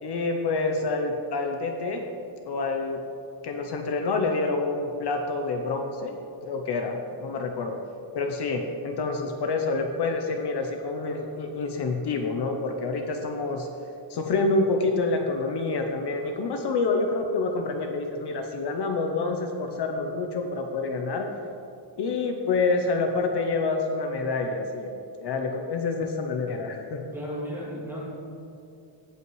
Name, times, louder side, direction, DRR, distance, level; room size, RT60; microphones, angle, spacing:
voice 1, 0.0-2.0 2.5-3.0 3.4-6.2 6.4-7.8 8.1-13.7 14.1-21.3 22.0-27.0, left 3 dB, 60° left, 4 dB, 0.7 m, -27 dB
voice 2, 27.1-28.1, equal, 5° right, -6 dB, 2.0 m, -34 dB
15.5 x 5.7 x 3.1 m, 2.6 s
wide cardioid pair, 155°, 45 cm